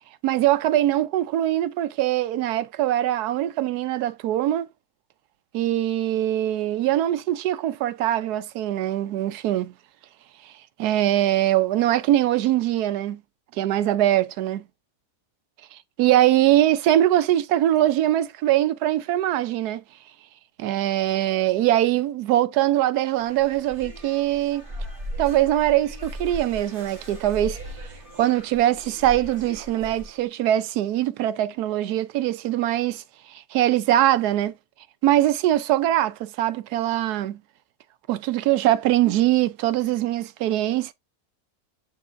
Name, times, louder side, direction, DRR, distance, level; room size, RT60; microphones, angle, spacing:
voice 1, 0.2-4.7 5.5-9.7 10.8-13.2 13.6-14.6 15.7-19.8 20.6-24.6 25.2-27.6 28.2-33.0 33.3-34.5 35.0-37.4 38.1-40.9, right 13 dB, 80° right, 1.2 m, -22 dB
sound 1, 23.0-30.2, equal, 35° right, 2.0 m, -38 dB
10.0 x 3.8 x 2.5 m
omnidirectional pair, 1.7 m